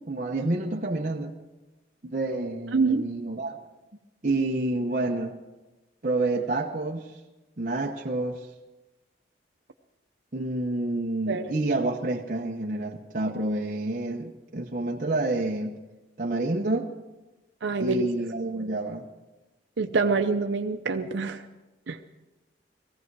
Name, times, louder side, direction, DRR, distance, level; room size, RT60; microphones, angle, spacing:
voice 1, 0.1-1.3 2.0-3.6 4.2-5.3 6.0-7.1 7.6-8.5 10.3-15.8 16.2-16.9 17.8-19.0, right 2 dB, 45° right, 0 dB, 0.9 m, -28 dB
voice 2, 2.7-3.1 11.3-11.5 17.6-18.0 19.8-21.4 21.9-22.0, right 4 dB, 90° right, 6 dB, 0.6 m, -25 dB
19.0 x 15.0 x 4.7 m, 1.1 s
head